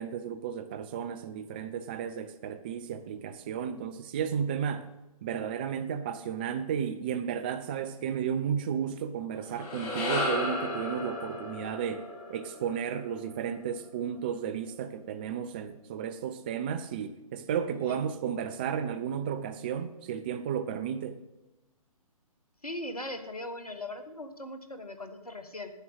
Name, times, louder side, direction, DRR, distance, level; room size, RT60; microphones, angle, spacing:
voice 1, 0.0-4.9 5.2-21.2, right 8 dB, 15° right, 0.3 m, -33 dB
sound 1, 9.4-13.8, left 2 dB, 25° left, 1.8 m, -35 dB
voice 2, 17.7-18.0 22.6-25.7, left 1 dB, 85° left, 1.5 m, -39 dB
9.7 x 6.0 x 8.0 m
figure-of-eight pair, 130°, 19 cm